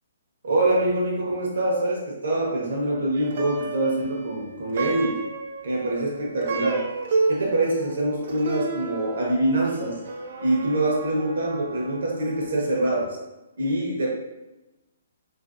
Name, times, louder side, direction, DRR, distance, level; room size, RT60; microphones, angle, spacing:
voice 1, 0.4-5.2 5.6-6.9 7.3-10.0 10.4-13.2 13.6-14.1, right 1 dB, 70° right, -3 dB, 0.7 m, -24 dB
Plucked string instrument, 3.2-12.6, right 4 dB, 45° right, 0.4 m, -32 dB
3.1 x 2.5 x 2.5 m, 1.0 s
hypercardioid pair, 170°, 0 cm